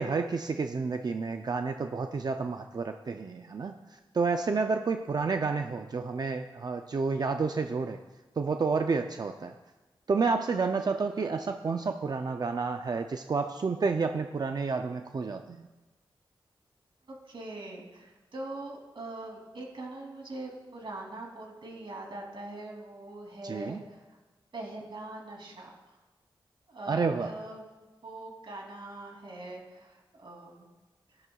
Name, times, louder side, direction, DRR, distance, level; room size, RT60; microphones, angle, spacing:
voice 1, 0.0-3.7 4.1-8.0 8.4-9.5 10.1-15.6 23.4-23.8 26.9-27.3, right 4 dB, 50° right, 6 dB, 0.5 m, -30 dB
voice 2, 17.1-24.0 24.5-25.7 26.7-27.6 28.0-30.7, right 2 dB, 65° right, -1 dB, 2.8 m, -42 dB
17.0 x 11.0 x 2.3 m, 1.2 s
wide cardioid pair, 110°, 9 cm